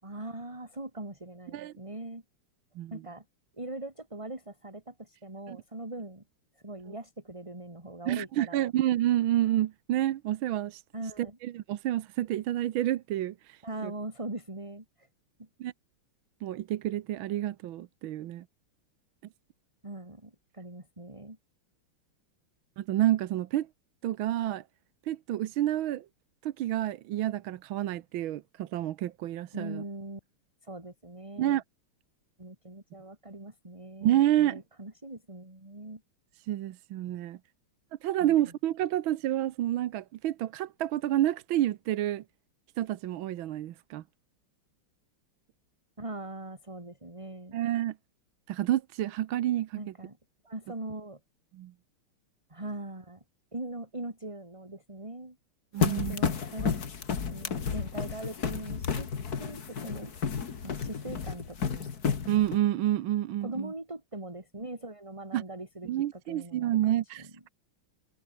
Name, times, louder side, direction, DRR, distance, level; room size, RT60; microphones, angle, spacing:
voice 1, 0.0-2.2 2.9-3.2 3.6-6.2 6.6-8.7 10.9-11.4 13.6-15.1 15.4-15.5 19.8-21.4 29.5-30.2 30.6-31.6 32.4-36.0 38.2-38.4 46.0-47.6 49.7-50.2 50.4-51.2 52.5-53.2 53.5-55.4 55.8-56.8 57.2-59.1 59.4-60.1 60.6-61.9 63.4-67.3, right 2 dB, 15° right, 3.5 m, -41 dB
voice 2, 8.1-10.8 11.4-13.9 15.6-15.7 16.4-18.4 22.8-23.7 24.0-24.6 25.1-26.0 26.4-29.8 31.4-31.6 34.0-34.6 36.5-37.4 38.0-42.2 42.8-44.0 47.5-47.9 48.5-49.8 51.5-51.7 55.7-56.2 62.3-63.7 65.3-65.4 65.8-67.5, right 13 dB, 70° right, 1.6 m, -29 dB
sound 1, 55.8-62.6, left 6 dB, 45° left, 2.2 m, -32 dB
omnidirectional pair, 2.4 m